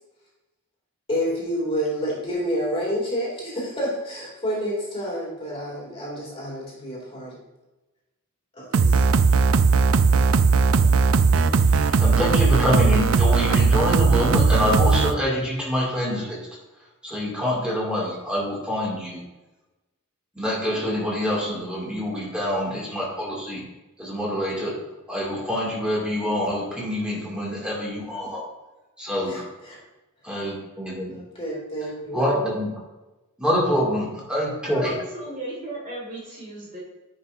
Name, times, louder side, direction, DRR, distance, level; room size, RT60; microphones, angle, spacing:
voice 1, 1.1-7.4 8.5-9.0 10.1-10.4 29.3-29.4 29.7-29.8 31.1-32.2, equal, 25° left, -4 dB, 2.5 m, -29 dB
sound 1, 8.7-15.1, right 4 dB, 70° right, 0.4 m, -18 dB
voice 2, 11.3-16.4 17.0-19.2 20.3-23.6 24.0-24.7 25.1-28.4 29.0-29.4 30.2-31.1 32.1-32.7 33.4-34.9, equal, 5° right, -5 dB, 2.2 m, -26 dB
voice 3, 34.3-36.8, right 1 dB, 35° right, -3 dB, 1.8 m, -36 dB
9.9 x 5.5 x 2.6 m, 1.1 s
head